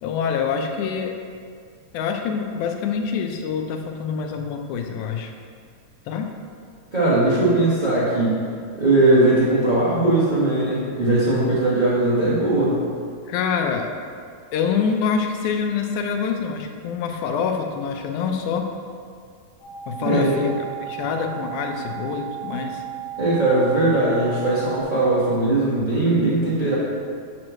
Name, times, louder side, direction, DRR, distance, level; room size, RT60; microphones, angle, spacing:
voice 1, 0.0-1.1 1.9-5.3 6.1-6.3 13.3-13.9 14.5-18.7 19.9-20.5 20.9-22.8, left 6 dB, 85° left, 4 dB, 2.1 m, -25 dB
voice 2, 6.9-8.4 8.7-12.9 20.0-20.4 23.2-26.7, right 2 dB, 70° right, -10 dB, 0.4 m, -19 dB
sound 1, 19.6-24.8, right 12 dB, 60° left, 2.5 m, -34 dB
7.5 x 3.1 x 6.1 m, 2.1 s
omnidirectional pair, 3.4 m